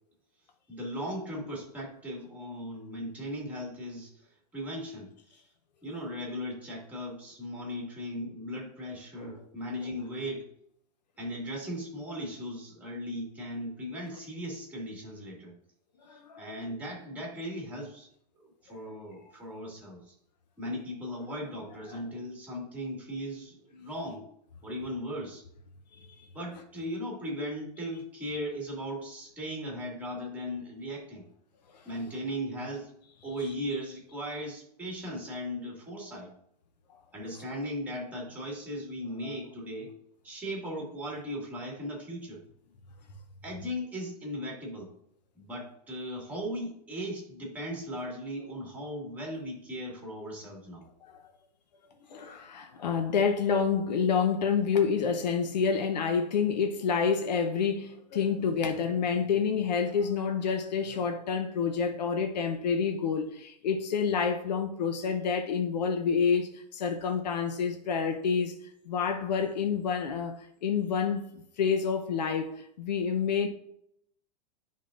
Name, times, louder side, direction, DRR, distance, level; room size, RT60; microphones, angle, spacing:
voice 1, 0.7-5.4 5.8-10.5 11.2-15.5 16.1-18.1 18.4-20.1 20.6-24.2 24.6-25.4 26.3-31.2 31.8-32.9 33.2-36.3 37.1-39.9 40.2-42.4 43.4-44.9 45.3-50.8, equal, 5° right, -2 dB, 2.0 m, -37 dB
voice 2, 16.1-16.5 21.9-22.0 26.0-26.1 51.0-51.1 52.1-68.5 68.9-73.5, left 6 dB, 90° left, 5 dB, 0.8 m, -28 dB
10.5 x 3.7 x 2.5 m, 0.72 s
supercardioid pair, 140°, 21 cm